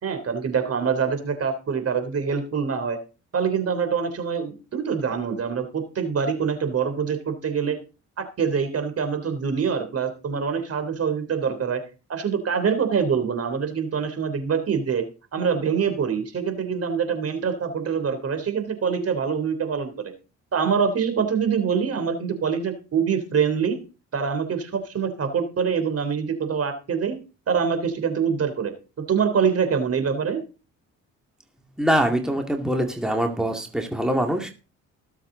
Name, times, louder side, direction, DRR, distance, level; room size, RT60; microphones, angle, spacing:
voice 1, 0.0-3.0 3.3-7.8 8.2-11.8 12.1-15.0 15.3-20.1 20.5-23.8 24.1-27.2 27.5-28.7 29.0-30.4, right 6 dB, 50° right, 8 dB, 3.3 m, -25 dB
voice 2, 31.8-34.5, right 1 dB, ahead, 3 dB, 2.2 m, -23 dB
20.0 x 7.3 x 3.9 m, 0.32 s
cardioid pair, 90°, 30 cm